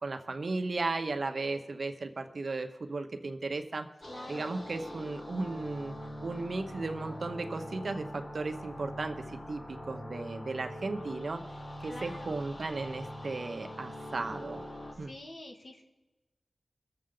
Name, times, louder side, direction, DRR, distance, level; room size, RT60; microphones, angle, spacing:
voice 1, 0.0-3.9 4.3-5.9 6.2-11.4 11.8-14.6 15.0-15.1, right 3 dB, 65° right, 6 dB, 0.9 m, -35 dB
sound 1, 4.0-14.9, equal, 55° left, 3.7 m, -43 dB
voice 2, 4.1-4.5 11.8-12.4 14.9-15.8, left 1 dB, 75° left, 1 dB, 1.9 m, -46 dB
22.5 x 7.6 x 3.9 m, 1.1 s
wide cardioid pair, 65°, 0 cm